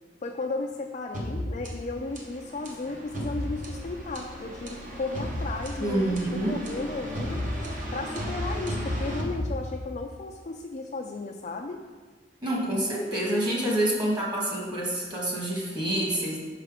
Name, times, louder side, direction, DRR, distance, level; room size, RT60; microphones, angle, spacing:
voice 1, 0.2-7.4 7.9-11.8, left 3 dB, 40° left, 1 dB, 0.4 m, -35 dB
sound 1, 1.1-10.1, equal, 45° right, 1.1 m, -34 dB
voice 2, 5.8-6.6 12.4-16.4, right 1 dB, 25° right, -3 dB, 1.6 m, -27 dB
5.7 x 5.7 x 4.9 m, 1.4 s
head